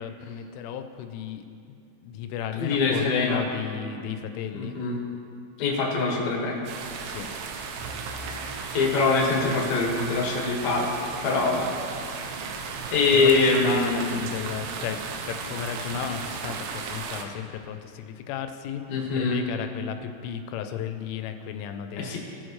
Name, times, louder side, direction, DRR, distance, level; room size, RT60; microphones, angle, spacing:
voice 1, 0.0-1.5 2.0-4.8 7.1-7.3 13.2-15.0 15.3-22.2, left 8 dB, 85° left, 8 dB, 3.0 m, -34 dB
voice 2, 2.5-3.4 4.5-5.0 5.6-6.7 8.7-10.9 11.2-11.7 12.9-14.1 18.9-19.4 22.0-22.2, left 3 dB, 65° left, -2 dB, 1.8 m, -23 dB
sound 1, 6.6-17.2, right 5 dB, 90° right, 2.4 m, -35 dB
Musical instrument, 7.8-16.3, right 3 dB, 70° right, 2.6 m, -45 dB
17.5 x 6.4 x 3.1 m, 2.5 s
omnidirectional pair, 5.6 m